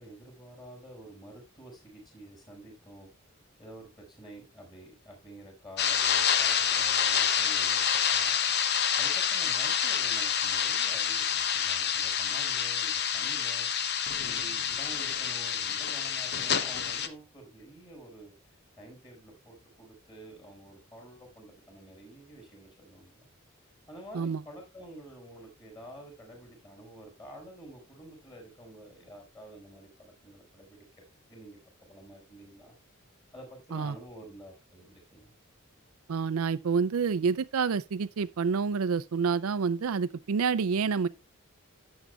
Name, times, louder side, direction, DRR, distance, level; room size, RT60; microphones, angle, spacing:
voice 1, 0.0-7.8 8.1-8.4 9.0-18.3 18.8-23.3 23.9-30.9 31.3-32.8 33.3-35.3, right 1 dB, 20° left, 5.4 m, -49 dB
sound 1, 5.8-17.1, left 8 dB, 50° left, 0.8 m, -28 dB
voice 2, 36.1-41.1, right 5 dB, 90° right, 0.5 m, -28 dB
12.5 x 8.1 x 2.3 m
head